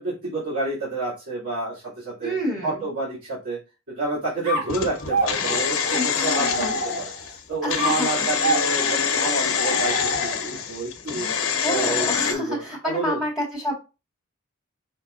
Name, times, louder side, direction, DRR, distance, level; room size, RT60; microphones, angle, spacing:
voice 1, 0.0-2.3 2.6-3.6 3.9-6.7 7.3-11.3 11.7-13.2, right 2 dB, 85° right, -10 dB, 2.5 m, -29 dB
voice 2, 2.2-2.9 6.0-6.7 7.6-8.3 11.6-13.7, equal, ahead, -7 dB, 2.0 m, -29 dB
sound 1, 4.4-7.3 7.8-10.6, right 1 dB, 35° right, 1.9 m, -28 dB
sound 2, 4.7-12.3, left 7 dB, 75° left, 0.9 m, -25 dB
5.6 x 3.3 x 2.6 m, 0.29 s
head